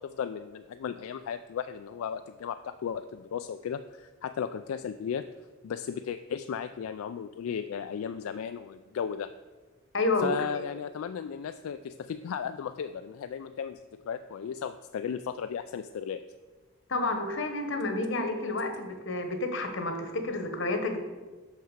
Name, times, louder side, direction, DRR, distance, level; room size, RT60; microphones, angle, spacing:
voice 1, 0.0-5.3 5.6-9.3 10.2-16.2, left 7 dB, 90° left, 10 dB, 0.3 m, -35 dB
voice 2, 9.9-10.6 16.9-21.0, left 2 dB, 65° left, 6 dB, 1.1 m, -30 dB
6.5 x 5.8 x 6.5 m, 1.3 s
head